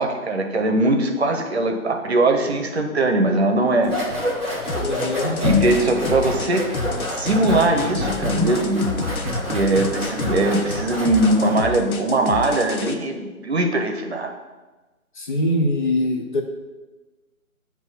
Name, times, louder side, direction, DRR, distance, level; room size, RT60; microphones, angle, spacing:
voice 1, 0.0-3.9 5.4-6.7 7.2-9.1 9.4-14.3, right 2 dB, 50° right, 4 dB, 0.9 m, -21 dB
sound 1, 3.8-11.7, left 2 dB, ahead, 1.2 m, -26 dB
sound 2, 4.7-12.9, left 4 dB, 85° left, 0.8 m, -31 dB
voice 2, 4.8-5.4 15.1-16.4, left 1 dB, 35° left, 1 dB, 0.8 m, -23 dB
7.9 x 3.0 x 5.5 m, 1.2 s
figure-of-eight pair, 150°, 43 cm